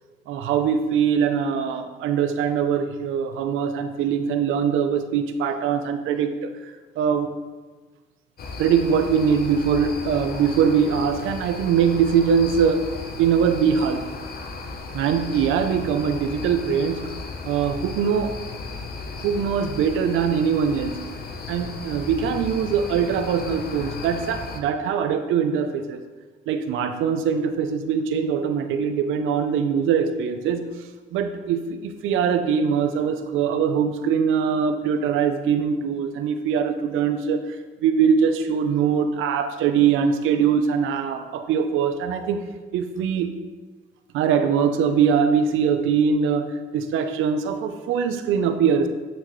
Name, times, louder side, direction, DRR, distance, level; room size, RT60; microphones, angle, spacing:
voice 1, 0.3-7.3 8.6-12.9 13.2-14.1 14.9-17.1 17.4-18.4 19.2-21.1 21.5-26.0 26.5-30.7 31.1-42.4 42.7-43.3 44.1-48.9, right 7 dB, 90° right, 8 dB, 0.6 m, -22 dB
sound 1, 8.4-24.6, left 3 dB, 50° left, 0.9 m, -35 dB
8.4 x 6.1 x 3.2 m, 1.3 s
cardioid pair, 90°, 20 cm